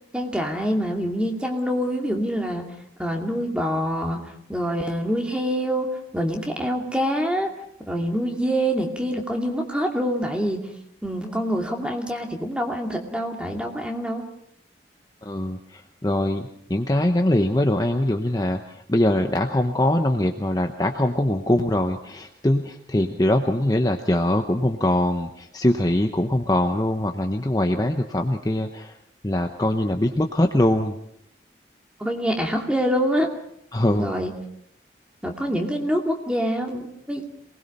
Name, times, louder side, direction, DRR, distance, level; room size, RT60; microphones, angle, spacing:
voice 1, 0.1-2.6 3.0-4.2 4.5-7.5 7.9-10.7 11.0-14.2 32.0-33.3 34.0-34.4 35.2-37.2, equal, 5° right, 2 dB, 2.5 m, -25 dB
voice 2, 15.2-28.9 29.2-31.0 33.7-34.1, left 1 dB, 20° left, 5 dB, 0.9 m, -22 dB
27.0 x 20.0 x 5.6 m, 0.71 s
head